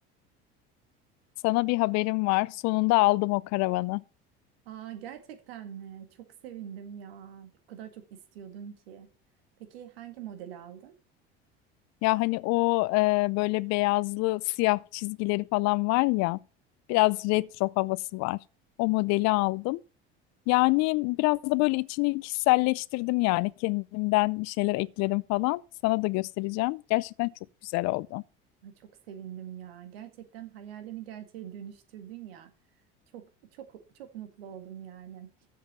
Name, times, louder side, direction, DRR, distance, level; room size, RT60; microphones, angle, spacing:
voice 1, 1.4-4.0 12.0-16.4 16.9-18.4 18.8-19.8 20.5-27.3 27.6-28.2, left 23 dB, 65° left, 0.6 m, -26 dB
voice 2, 4.7-8.0 8.3-9.1 9.6-10.9 28.6-32.5 33.1-35.3, right 10 dB, 85° right, 1.9 m, -44 dB
7.5 x 7.3 x 6.8 m
supercardioid pair, 85°, 29 cm